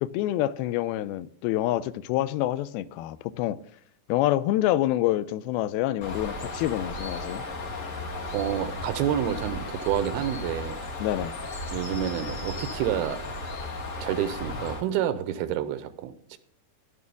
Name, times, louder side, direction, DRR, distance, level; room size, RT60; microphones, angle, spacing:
voice 1, 0.0-3.6 4.1-7.4 11.0-11.4, left 14 dB, 85° left, 2.4 m, -27 dB
Bird, 6.0-14.8, left 2 dB, 65° left, 0.7 m, -35 dB
voice 2, 8.3-10.8 11.7-13.2 14.0-16.4, right 10 dB, 90° right, 2.8 m, -29 dB
11.0 x 11.0 x 3.5 m
omnidirectional pair, 4.4 m